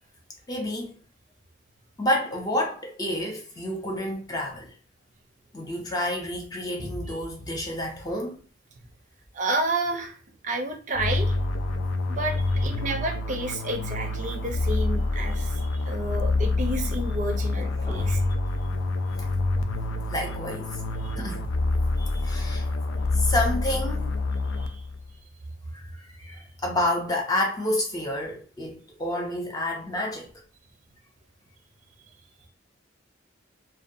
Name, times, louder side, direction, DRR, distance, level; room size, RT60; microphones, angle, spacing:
voice 1, 0.5-1.0 2.0-4.7 5.5-8.4 17.6-18.2 19.2-19.3 20.1-20.8 21.2-21.5 22.0-24.1 25.7-30.3, left 1 dB, 20° left, 0.4 m, -30 dB
voice 2, 9.3-10.2 10.4-11.4 12.1-18.2 21.0-21.1 24.6-24.8, right 2 dB, 40° right, 0.5 m, -30 dB
sound 1, 10.9-25.1, left 2 dB, 85° left, 0.4 m, -27 dB
2.5 x 2.2 x 2.5 m
head